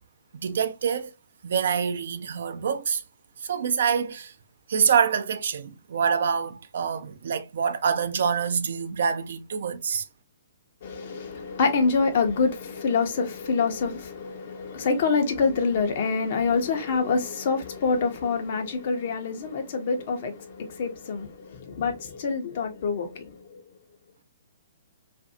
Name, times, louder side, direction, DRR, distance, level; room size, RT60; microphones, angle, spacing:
voice 1, 0.3-1.1 1.4-3.0 3.4-4.3 4.7-10.1, right 7 dB, 60° right, 0.4 m, -26 dB
voice 2, 10.8-23.6, left 4 dB, 50° left, 0.7 m, -26 dB
2.5 x 2.3 x 2.6 m
figure-of-eight pair, 125°, 0 cm